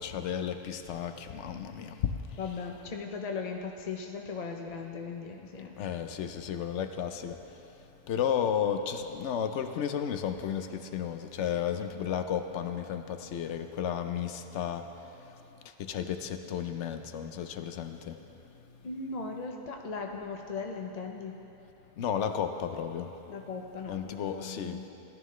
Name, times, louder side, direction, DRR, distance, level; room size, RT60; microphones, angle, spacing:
voice 1, 0.0-2.1 5.8-7.3 8.1-10.7 10.9-14.8 15.9-18.0 22.0-23.1 23.9-24.8, left 8 dB, 75° left, 8 dB, 0.9 m, -33 dB
voice 2, 2.4-5.7 18.8-21.3 23.3-24.8, left 4 dB, 45° left, 2 dB, 0.6 m, -38 dB
16.5 x 11.0 x 3.2 m, 3.0 s
omnidirectional pair, 1.2 m